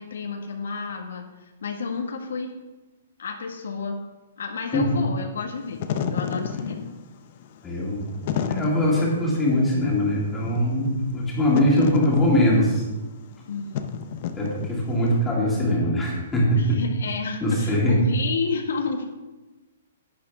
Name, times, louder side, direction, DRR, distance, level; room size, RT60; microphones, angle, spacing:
voice 1, 0.0-2.5 3.2-4.0 4.4-6.9 13.5-13.9 16.6-19.1, left 5 dB, 80° left, 2 dB, 1.6 m, -31 dB
Wind / Fire, 5.6-15.1, left 7 dB, 35° left, 0.7 m, -32 dB
voice 2, 7.6-8.0 8.5-12.8 14.4-16.8 17.4-18.0, left 1 dB, 5° left, -5 dB, 2.3 m, -22 dB
11.0 x 9.6 x 3.5 m, 1.1 s
hypercardioid pair, 180°, 0 cm